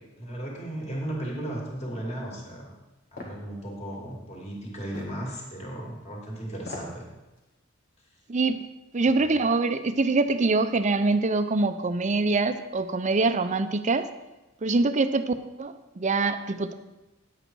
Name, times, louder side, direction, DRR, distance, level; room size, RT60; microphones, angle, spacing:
voice 1, 0.2-2.7 3.1-7.1 9.2-9.3, right 1 dB, 30° left, -2 dB, 2.5 m, -35 dB
sound 1, 3.2-3.4 4.9-5.2 6.6-7.0 7.4-7.5, left 2 dB, 50° left, 2.1 m, -39 dB
voice 2, 8.3-8.6 8.9-14.1 14.6-16.7, right 3 dB, 35° right, 10 dB, 0.6 m, -24 dB
9.9 x 8.0 x 4.6 m, 1.0 s
head